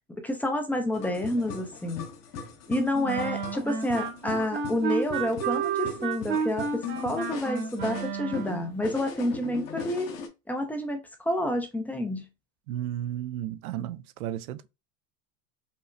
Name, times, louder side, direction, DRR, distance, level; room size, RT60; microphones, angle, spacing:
voice 1, 0.2-2.0 2.7-10.1 10.5-12.3, left 1 dB, 5° left, 0.3 m, -29 dB
sound 1, 0.9-10.3, left 6 dB, 40° left, 0.8 m, -40 dB
sound 2, 3.0-8.7, right 6 dB, 25° right, 0.8 m, -31 dB
voice 2, 12.7-14.7, right 11 dB, 85° right, 0.5 m, -33 dB
5.2 x 2.0 x 2.5 m
supercardioid pair, 110°, 42 cm